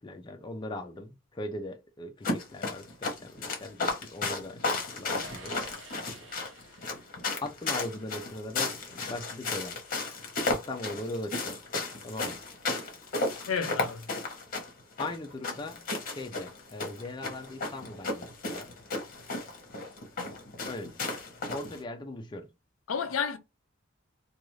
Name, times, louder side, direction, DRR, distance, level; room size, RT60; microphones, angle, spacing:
voice 1, 0.0-5.5 7.4-9.8 10.5-11.6 12.0-12.4 15.0-18.7 20.7-21.2 21.5-22.5, left 2 dB, 20° left, 0.4 m, -40 dB
sound 1, 2.2-21.8, left 3 dB, 45° left, 0.9 m, -34 dB
sound 2, 5.2-7.4, right 2 dB, 65° right, 0.9 m, -50 dB
voice 2, 13.5-14.1 22.9-23.4, left 6 dB, 80° left, 0.5 m, -31 dB
2.5 x 2.3 x 3.1 m
head